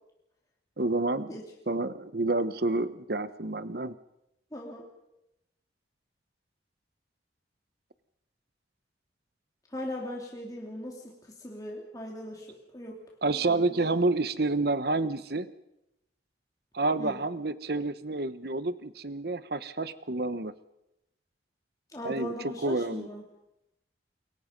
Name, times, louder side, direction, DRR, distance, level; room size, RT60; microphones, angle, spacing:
voice 1, 0.8-1.3 1.7-3.9 13.2-15.5 16.7-20.5 22.0-23.1, right 2 dB, 55° right, 13 dB, 1.1 m, -29 dB
voice 2, 4.5-4.8 9.7-11.0 11.4-12.5 12.7-13.0 13.3-14.0 17.0-17.2 21.9-23.2, left 1 dB, 20° left, -2 dB, 3.2 m, -39 dB
29.0 x 23.5 x 5.3 m, 0.86 s
head